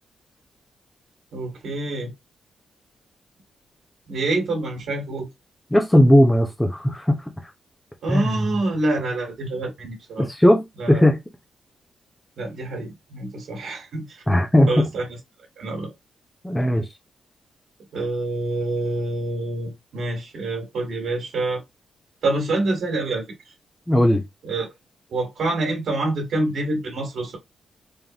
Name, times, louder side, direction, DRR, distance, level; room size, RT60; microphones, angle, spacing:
voice 1, 1.3-2.1 4.1-5.3 8.0-10.3 10.8-11.0 12.4-14.2 14.7-15.2 15.6-15.9 17.9-21.6 22.2-23.5 24.4-24.7 25.1-27.4, right 2 dB, 75° right, 1.7 m, -26 dB
voice 2, 5.7-7.3 8.1-8.3 10.2-11.2 14.3-14.9 16.4-16.9 23.9-24.2, left 1 dB, 10° left, 0.9 m, -17 dB
3.8 x 3.4 x 2.9 m
cardioid pair, 55°, 0 cm